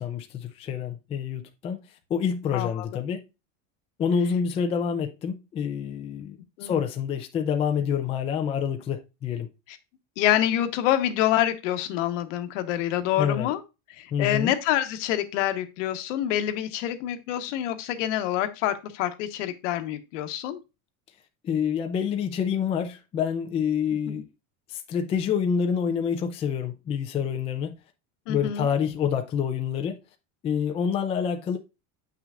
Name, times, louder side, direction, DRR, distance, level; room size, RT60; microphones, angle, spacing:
voice 1, 0.0-1.8 2.1-3.2 4.0-9.5 13.2-13.5 14.1-14.5 21.4-24.3 24.7-27.7 28.3-30.0 30.4-31.6, left 7 dB, 15° left, 0.4 m, -27 dB
voice 2, 2.5-2.9 6.6-6.7 9.7-9.8 10.2-13.6 13.9-20.6 24.1-24.2 28.3-28.7, left 12 dB, 65° left, 1.2 m, -26 dB
7.8 x 5.9 x 2.4 m
supercardioid pair, 160°, 40 cm